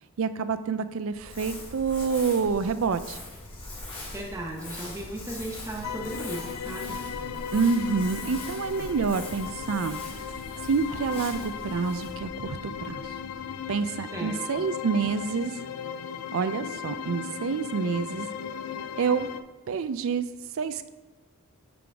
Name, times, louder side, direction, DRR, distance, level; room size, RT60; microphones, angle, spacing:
voice 1, 0.2-3.2 7.5-10.0 10.3-13.2 13.7-15.6 16.3-18.3 19.0-19.3 19.7-20.3 20.6-20.9, right 5 dB, 65° right, 12 dB, 0.4 m, -28 dB
Crumpling crinkling, 1.1-13.6, left 2 dB, 25° left, 1.8 m, -42 dB
voice 2, 4.1-7.0 14.1-14.7, right 1 dB, 15° right, -1 dB, 0.7 m, -36 dB
sound 1, 5.8-19.4, left 7 dB, 90° left, 0.4 m, -37 dB
9.8 x 3.8 x 3.4 m, 1.2 s
head